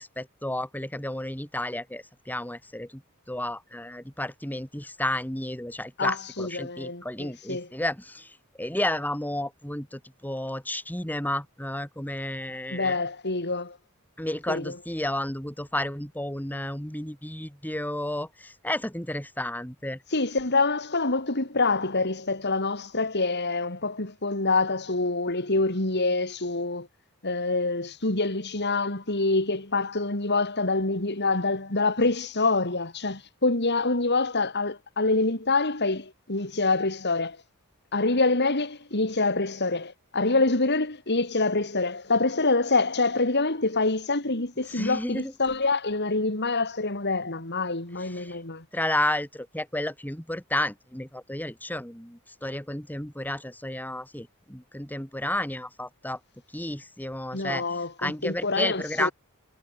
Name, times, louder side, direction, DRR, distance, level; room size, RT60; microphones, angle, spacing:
voice 1, 0.0-3.0 3.3-13.0 14.2-20.0 44.7-45.3 48.0-48.4 48.7-56.2 56.5-59.1, left 1 dB, 10° left, 4.5 m, -32 dB
voice 2, 6.0-7.7 12.7-13.8 14.5-14.8 20.1-26.9 27.2-37.4 37.9-48.7 57.3-59.1, left 3 dB, 50° left, 3.6 m, -26 dB
head